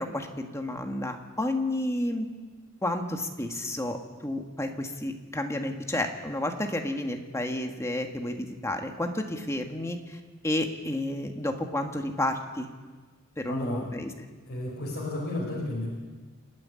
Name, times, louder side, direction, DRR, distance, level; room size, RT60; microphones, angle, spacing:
voice 1, 0.0-2.3 2.8-12.7 13.4-14.1, left 1 dB, 15° left, 4 dB, 1.7 m, -31 dB
voice 2, 13.5-13.8 14.5-15.9, left 1 dB, 50° left, -4 dB, 5.2 m, -32 dB
27.5 x 9.7 x 9.8 m, 1.4 s
head